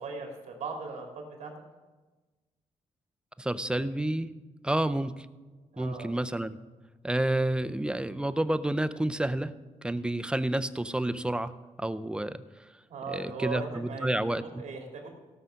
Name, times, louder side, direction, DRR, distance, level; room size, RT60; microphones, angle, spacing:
voice 1, 0.0-1.5 5.7-6.1 12.9-14.1 14.4-15.1, right 4 dB, 65° right, 1 dB, 2.6 m, -38 dB
voice 2, 3.4-4.3 4.6-5.3 5.8-6.6 7.0-9.5 9.8-11.5 11.8-12.4 13.1-14.6, right 1 dB, 5° right, 13 dB, 0.4 m, -29 dB
17.0 x 6.3 x 5.7 m, 1.2 s
cardioid pair, 135°, 12 cm